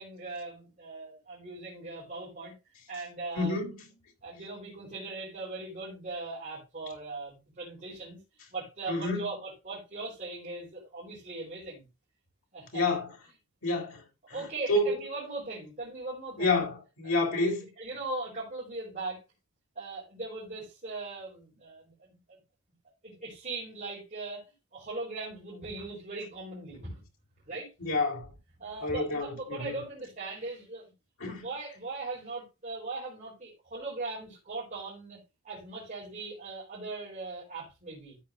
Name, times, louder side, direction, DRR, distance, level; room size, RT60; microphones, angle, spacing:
voice 1, 0.0-2.5 2.9-3.6 4.2-8.2 8.5-11.9 12.5-12.9 14.3-16.6 17.0-17.2 17.8-19.2 19.8-22.4 23.0-24.4 24.7-27.0 27.5-27.9 28.6-30.8 31.2-35.2 35.4-38.2, right 3 dB, 35° right, 4.1 m, -39 dB
voice 2, 3.3-3.7 8.9-9.3 12.7-13.1 13.6-14.0 14.7-14.9 16.4-17.6 27.8-28.2 28.8-29.8 31.2-31.5, left 2 dB, 75° left, 3.5 m, -28 dB
13.5 x 8.0 x 2.6 m
head